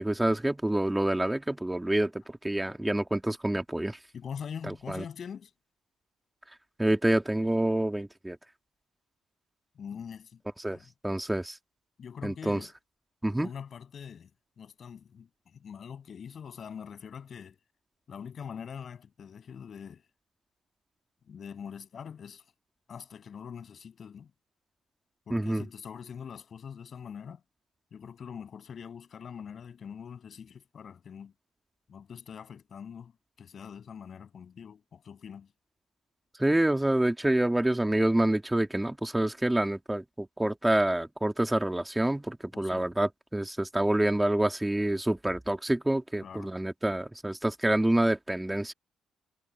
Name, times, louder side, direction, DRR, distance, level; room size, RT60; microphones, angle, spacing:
voice 1, 0.0-2.1 2.4-4.0 4.7-5.0 6.8-8.4 10.6-10.8 11.0-11.5 12.2-12.6 13.2-13.5 25.3-25.6 36.4-48.7, right 1 dB, 10° right, 2.4 m, -27 dB
voice 2, 4.1-5.5 9.8-10.9 12.0-12.7 13.4-14.3 14.6-17.6 18.1-20.1 21.3-22.4 22.9-24.3 25.3-27.4 27.9-31.3 31.9-33.1 33.4-35.5 42.5-42.9 46.2-46.5, left 7 dB, 50° left, 7.1 m, -43 dB
cardioid pair, 90°, 0 cm